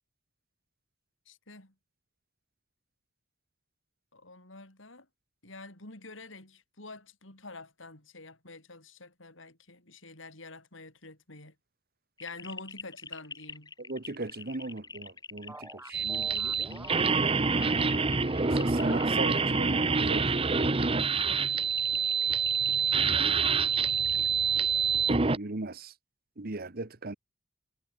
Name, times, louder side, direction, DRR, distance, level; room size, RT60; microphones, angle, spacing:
voice 1, 1.3-1.7 4.1-5.1 5.4-11.5 12.2-13.7 23.2-23.6 24.1-24.4, left 2 dB, 85° left, 7.5 m, -47 dB
sound 1, 12.2-24.3, left 5 dB, 20° left, 1.3 m, -44 dB
voice 2, 13.8-16.9 17.2-17.9 18.4-20.3 25.1-25.9 26.4-27.1, right 2 dB, 50° right, 1.3 m, -38 dB
sound 2, 15.5-17.8 18.3-20.2 20.5-21.1, right 1 dB, 10° right, 2.0 m, -46 dB
sound 3, 15.9-25.4, right 5 dB, 30° right, 0.9 m, -26 dB
head